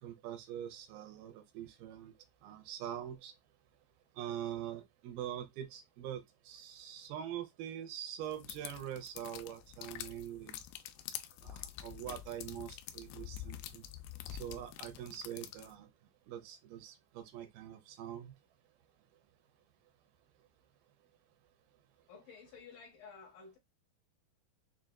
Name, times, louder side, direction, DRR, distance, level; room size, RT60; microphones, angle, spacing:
voice 1, 0.0-2.1 2.4-3.3 4.2-10.6 11.4-13.8 14.3-15.9 16.3-18.3, right 10 dB, 85° right, 2.6 m, -44 dB
sound 1, 8.3-15.7, left 12 dB, 85° left, 2.3 m, -47 dB
voice 2, 22.1-23.6, left 5 dB, 65° left, 2.7 m, -53 dB
6.8 x 2.5 x 2.2 m
omnidirectional pair, 4.3 m